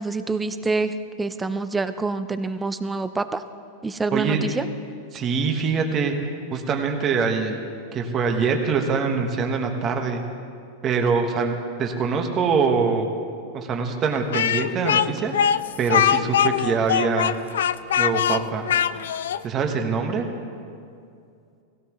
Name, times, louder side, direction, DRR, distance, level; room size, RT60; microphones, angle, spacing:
voice 1, 0.0-3.4 3.8-4.6, right 3 dB, 10° right, 11 dB, 0.5 m, -26 dB
voice 2, 4.1-4.4 5.1-6.1 6.5-7.6 7.9-10.2 10.8-11.5 11.8-13.1 13.5-17.4 18.0-18.7 19.4-20.2, right 5 dB, 30° right, 3 dB, 1.4 m, -24 dB
Speech, 14.3-19.4, left 9 dB, 85° left, 0.3 m, -22 dB
17.0 x 17.0 x 3.1 m, 2.4 s
supercardioid pair, 140°, 0 cm